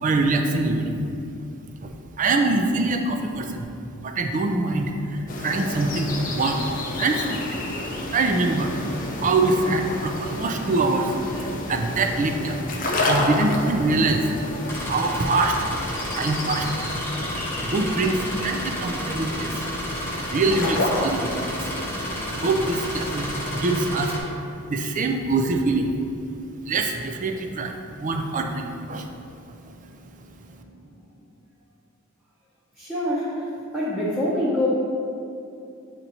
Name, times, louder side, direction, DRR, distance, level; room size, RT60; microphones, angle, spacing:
voice 1, 0.0-1.0 1.8-1.9 2.2-3.6 4.0-6.6 7.0-7.4 8.1-8.8 9.2-12.8 13.0-14.3 14.8-15.6 16.1-16.7 17.0-17.1 17.6-19.6 20.3-21.7 22.2-24.2 24.7-25.9 26.6-29.1 30.5-30.6, right 3 dB, 35° right, 4 dB, 0.4 m, -24 dB
sound 1, 5.3-23.6, left 1 dB, 40° left, 0.6 m, -30 dB
sound 2, 14.7-24.2, equal, 10° left, 0.9 m, -32 dB
voice 2, 32.8-33.5 33.7-34.7, left 1 dB, 10° right, -9 dB, 0.8 m, -25 dB
8.0 x 2.9 x 4.1 m, 2.6 s
head